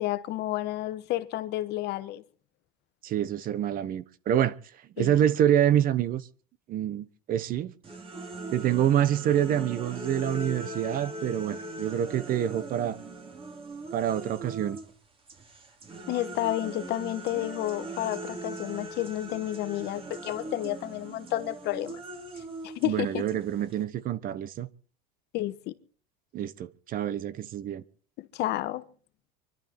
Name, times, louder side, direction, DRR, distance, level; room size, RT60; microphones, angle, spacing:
voice 1, 0.0-2.2 5.0-5.1 16.1-22.0 22.6-23.2 25.3-25.7 28.2-28.8, left 15 dB, 55° left, 1.3 m, -31 dB
voice 2, 3.0-4.5 5.0-6.3 6.7-7.7 8.5-13.0 13.9-14.8 22.8-24.7 26.3-27.8, right 10 dB, 45° right, 1.1 m, -26 dB
sound 1, 7.8-14.9 15.3-23.8, right 2 dB, 25° right, 3.1 m, -40 dB
25.0 x 12.0 x 4.4 m
supercardioid pair, 130°, 21 cm